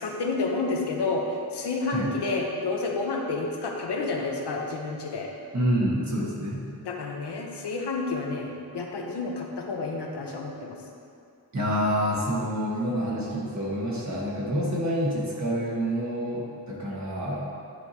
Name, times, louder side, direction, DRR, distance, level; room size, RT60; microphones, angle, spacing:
voice 1, 0.0-5.3 6.8-10.8, left 3 dB, 75° left, 0 dB, 0.9 m, -30 dB
voice 2, 5.5-6.6 11.5-17.4, equal, 45° right, -5 dB, 1.5 m, -27 dB
9.8 x 4.7 x 2.9 m, 2.4 s
wide cardioid pair, 145°, 40 cm